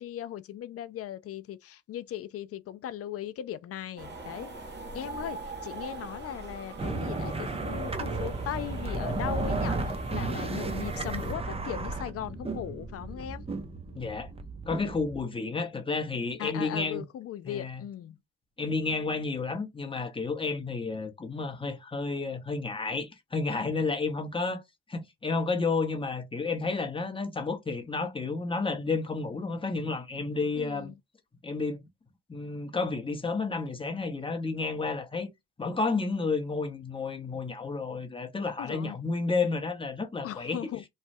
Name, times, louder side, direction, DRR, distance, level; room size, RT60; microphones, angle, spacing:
voice 1, 0.0-13.4 16.4-18.2 30.6-30.9 38.6-39.0 40.2-40.8, left 11 dB, 50° left, 0.4 m, -38 dB
sound 1, 4.0-11.3, right 2 dB, 35° right, 1.0 m, -42 dB
sound 2, 6.8-15.2, right 3 dB, 20° right, 0.6 m, -34 dB
voice 2, 13.9-14.3 14.6-17.0 17.4-17.8 18.6-24.6 24.9-30.9 31.4-31.8 32.3-35.3 35.6-40.6, left 4 dB, 15° left, 0.8 m, -31 dB
3.1 x 2.2 x 2.6 m
cardioid pair, 90°, 30 cm